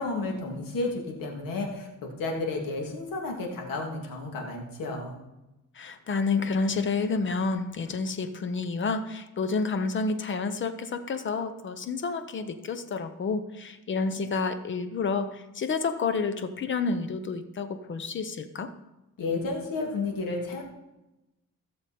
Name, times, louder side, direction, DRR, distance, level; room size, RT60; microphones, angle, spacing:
voice 1, 0.0-5.2 19.2-20.6, left 3 dB, 85° left, 0 dB, 2.4 m, -32 dB
voice 2, 5.7-18.7, left 4 dB, 35° left, 10 dB, 0.7 m, -29 dB
15.5 x 6.9 x 4.3 m, 0.99 s
cardioid pair, 160°, 32 cm